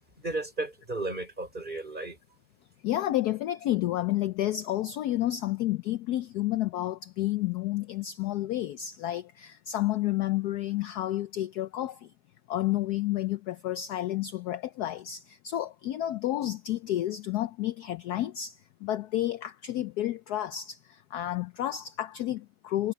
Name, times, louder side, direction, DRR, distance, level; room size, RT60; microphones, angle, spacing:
voice 1, 0.2-2.2, right 2 dB, 25° right, 6.4 m, -34 dB
voice 2, 2.8-12.1 12.5-22.9, left 14 dB, 70° left, 1.0 m, -30 dB
omnidirectional pair, 2.1 m